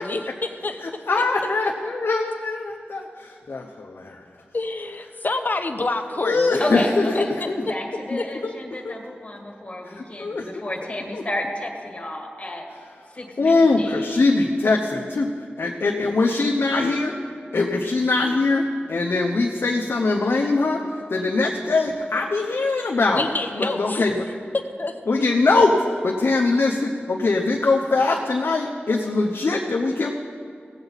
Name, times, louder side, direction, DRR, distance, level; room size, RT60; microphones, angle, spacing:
voice 1, 0.0-1.0 4.5-6.6 7.1-7.5 8.2-8.3 23.1-24.0 24.5-24.9, left 2 dB, 50° left, 6 dB, 0.9 m, -27 dB
voice 2, 0.8-4.2 6.2-7.6 8.4-8.5 8.8-8.9 9.8-10.6 11.1-11.2 13.4-17.2 17.5-23.2 23.6-24.2 25.1-25.8 26.0-30.1, left 3 dB, 75° left, -1 dB, 0.7 m, -22 dB
voice 3, 6.6-7.3 7.7-12.6 13.1-14.0, left 1 dB, 30° left, 0 dB, 2.0 m, -31 dB
17.0 x 8.0 x 4.0 m, 2.3 s
wide cardioid pair, 60°, 4 cm